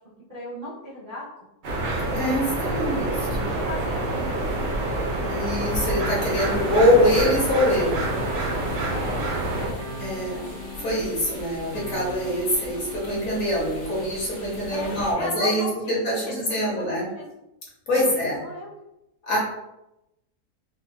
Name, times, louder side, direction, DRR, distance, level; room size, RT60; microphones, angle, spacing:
voice 1, 0.3-1.3 3.2-4.7 8.9-9.4 9.7-10.5 14.7-17.2 17.9-18.7, left 1 dB, 40° right, -9 dB, 0.5 m, -36 dB
sound 1, 1.6-9.7, right 2 dB, 60° right, 1.1 m, -27 dB
voice 2, 2.0-3.3 5.2-8.0 10.0-10.5 10.8-17.1 17.9-18.4 19.2-19.4, left 1 dB, 55° left, -4 dB, 1.4 m, -24 dB
sound 2, 5.8-13.8, right 1 dB, 90° right, 1.3 m, -39 dB
sound 3, 6.1-15.1, left 1 dB, 85° left, 1.6 m, -41 dB
4.3 x 2.4 x 2.3 m, 0.89 s
omnidirectional pair, 1.7 m